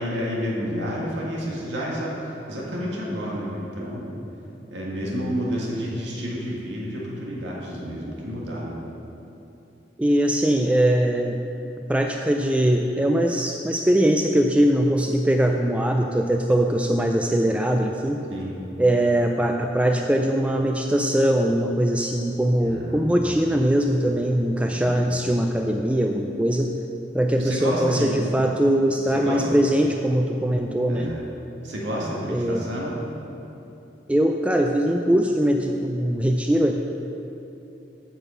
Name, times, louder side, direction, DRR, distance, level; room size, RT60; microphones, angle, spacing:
voice 1, 0.0-4.1 4.7-8.7 18.3-18.5 22.6-23.3 24.7-25.1 27.4-28.2 29.1-29.5 30.9-31.2 31.6-32.9, equal, 85° right, -4 dB, 1.7 m, -30 dB
voice 2, 10.0-11.4 11.9-18.2 18.8-26.7 27.1-31.1 32.3-32.7 34.1-36.7, right 1 dB, 5° right, 3 dB, 0.3 m, -21 dB
9.1 x 6.0 x 6.9 m, 2.9 s
head